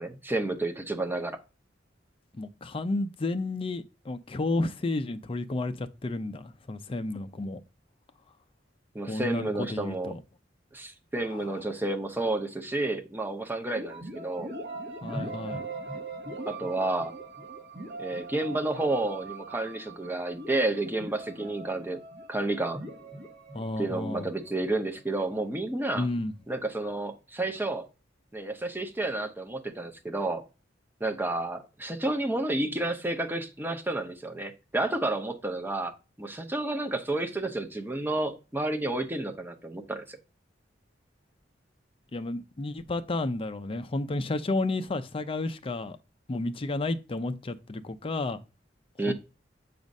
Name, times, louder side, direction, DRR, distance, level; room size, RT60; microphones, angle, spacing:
voice 1, 0.0-1.4 8.9-10.2 10.7-14.5 16.5-17.1 18.0-22.0 22.3-22.8 23.8-26.1 26.5-27.9 28.3-30.4 31.0-40.2 49.0-49.1, right 2 dB, 10° right, 0.7 m, -31 dB
voice 2, 2.4-7.6 9.1-10.2 11.3-11.4 15.0-15.6 23.5-24.3 25.9-26.3 42.1-46.0 46.3-48.4 49.1-49.2, left 2 dB, 30° left, 0.5 m, -31 dB
sound 1, 13.8-25.5, right 2 dB, 60° right, 1.3 m, -41 dB
7.1 x 2.5 x 5.3 m
head